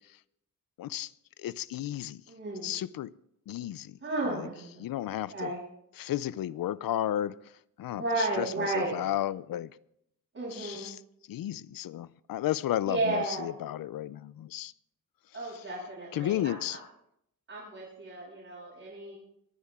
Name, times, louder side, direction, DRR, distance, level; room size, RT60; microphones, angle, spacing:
voice 1, 0.8-1.1 1.4-2.2 2.6-3.1 3.5-4.0 4.3-4.5 4.8-5.5 6.0-7.5 7.8-9.7 10.5-11.0 11.3-14.7 15.5-15.6 16.1-16.8, left 12 dB, 85° left, 0.5 m, -33 dB
voice 2, 2.3-2.8 4.0-4.8 5.1-5.6 7.9-9.1 10.3-10.9 12.9-13.5 15.3-16.8 17.5-19.2, right 2 dB, 40° right, 6.9 m, -33 dB
23.5 x 9.7 x 3.6 m
wide cardioid pair, 120°, 34 cm